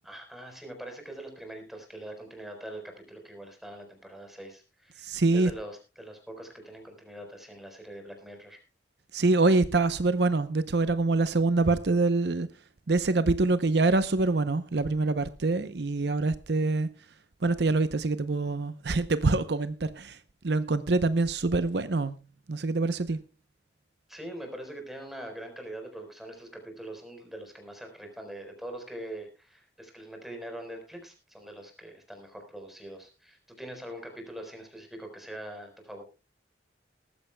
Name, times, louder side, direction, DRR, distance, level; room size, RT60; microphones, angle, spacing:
voice 1, 0.0-8.6 24.1-36.0, right 1 dB, ahead, 4.3 m, -43 dB
voice 2, 5.0-5.5 9.1-12.5 12.9-16.9 17.4-20.2 20.4-22.1 22.5-23.2, right 3 dB, 65° right, 0.7 m, -25 dB
19.5 x 14.0 x 2.2 m
head